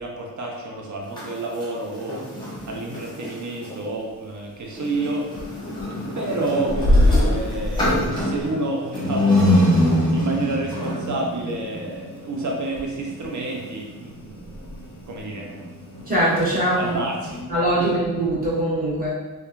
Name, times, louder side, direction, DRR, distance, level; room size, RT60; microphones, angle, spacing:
voice 1, 0.0-5.3 6.2-14.5 15.1-15.5 16.8-17.4, right 2 dB, 50° right, -1 dB, 0.6 m, -29 dB
sound 1, 1.0-3.8 4.7-17.4, left 1 dB, 10° left, 1.0 m, -26 dB
sound 2, 4.6-4.7 5.0-5.1 5.3-5.5 5.8-6.0 6.6-8.5 9.1-9.2 10.0-10.1 11.1-11.2 11.4-11.6 11.9-12.2 12.7-12.9 13.2-13.4 14.3-15.3, left 1 dB, 40° left, 0.4 m, -22 dB
voice 2, 16.1-17.0 17.5-19.1, right 1 dB, 20° right, -9 dB, 1.3 m, -22 dB
2.8 x 2.2 x 2.4 m, 1.2 s
cardioid pair, 55°, 39 cm